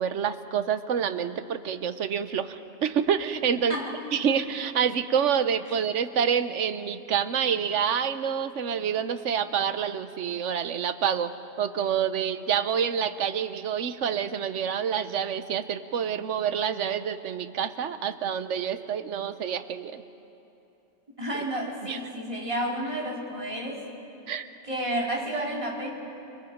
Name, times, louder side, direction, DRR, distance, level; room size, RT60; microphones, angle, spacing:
voice 1, 0.0-3.8 4.1-11.3 11.6-20.0 21.9-22.0 24.3-24.5, right 8 dB, 85° right, 11 dB, 1.2 m, -27 dB
voice 2, 21.2-23.8 24.7-25.9, right 1 dB, 25° right, -3 dB, 3.5 m, -31 dB
29.0 x 21.0 x 5.1 m, 2.9 s
omnidirectional pair, 1.2 m